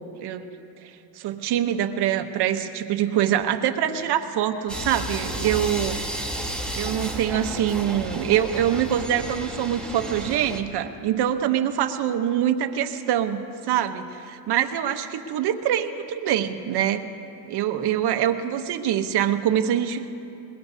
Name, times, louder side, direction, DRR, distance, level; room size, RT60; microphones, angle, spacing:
voice 1, 0.8-6.0 6.7-17.1 17.5-20.1, right 10 dB, 55° right, 7 dB, 0.9 m, -24 dB
sound 1, 4.7-10.6, right 1 dB, ahead, 1.1 m, -32 dB
22.0 x 21.5 x 2.7 m, 2.8 s
cardioid pair, 135°, 48 cm